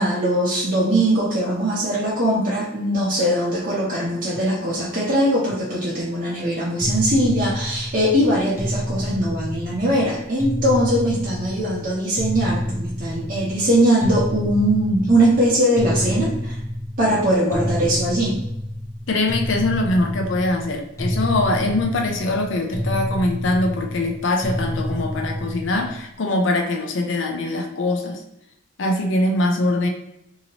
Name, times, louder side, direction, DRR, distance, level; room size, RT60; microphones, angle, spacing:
voice 1, 0.0-16.6 17.0-18.4, right 1 dB, 40° right, -6 dB, 0.6 m, -21 dB
sound 1, 6.8-26.1, equal, 15° left, 0.5 m, -28 dB
voice 2, 19.1-28.2 28.8-29.9, left 2 dB, 60° left, 2 dB, 0.5 m, -22 dB
2.8 x 2.7 x 2.9 m, 0.84 s
head